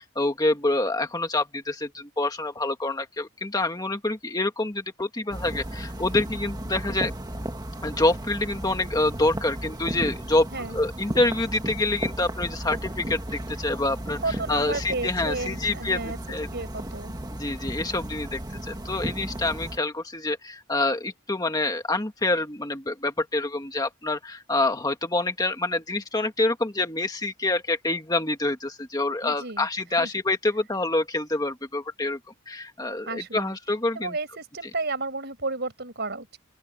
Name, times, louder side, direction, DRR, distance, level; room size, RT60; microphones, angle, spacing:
voice 1, 0.0-7.1 7.8-14.2 14.5-16.0 16.3-16.5 17.4-32.2 32.5-34.1, left 2 dB, 20° left, 1.8 m, -27 dB
sound 1, 5.3-19.8, right 1 dB, 20° right, 1.8 m, -34 dB
voice 2, 14.2-16.2 16.5-17.1 29.2-29.7 30.0-30.1 33.1-33.5 33.9-36.4, right 3 dB, 50° right, 5.5 m, -32 dB
open air
head